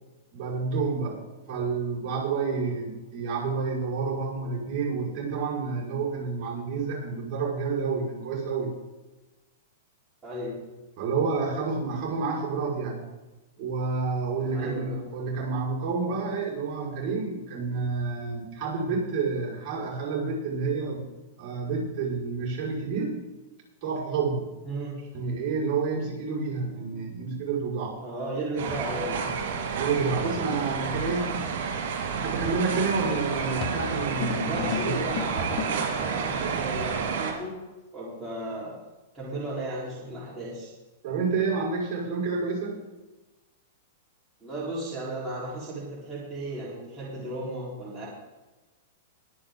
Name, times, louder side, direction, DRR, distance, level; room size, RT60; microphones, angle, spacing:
voice 1, 0.3-1.2 1.5-8.7 11.0-13.0 13.6-21.0 21.4-23.2 23.8-24.5 25.1-28.0 29.8-31.4 32.1-35.0 41.0-42.8, right 4 dB, 40° right, -5 dB, 5.4 m, -29 dB
voice 2, 10.2-10.6 14.5-15.0 24.6-25.0 28.0-29.4 34.4-37.5 37.9-38.7 39.1-40.7 44.4-48.1, right 1 dB, 15° right, -8 dB, 4.2 m, -35 dB
River Walk, 28.6-37.3, right 6 dB, 70° right, 3.9 m, -30 dB
sound 1, 33.6-36.0, left 8 dB, 50° left, 1.0 m, -34 dB
22.5 x 8.3 x 3.9 m, 1.1 s
hypercardioid pair, 135°, 0 cm